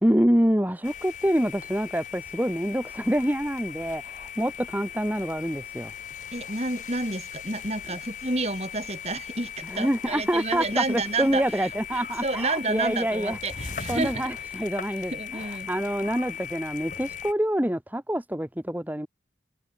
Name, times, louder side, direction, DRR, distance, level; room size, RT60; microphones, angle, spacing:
voice 1, 0.0-5.9 9.7-13.4 13.9-15.1 15.7-19.1, equal, 10° right, 1.2 m, -26 dB
sound 1, 0.8-17.3, left 7 dB, 45° left, 5.1 m, -39 dB
voice 2, 6.3-14.5 14.9-15.7, right 2 dB, 35° right, 7.6 m, -30 dB
head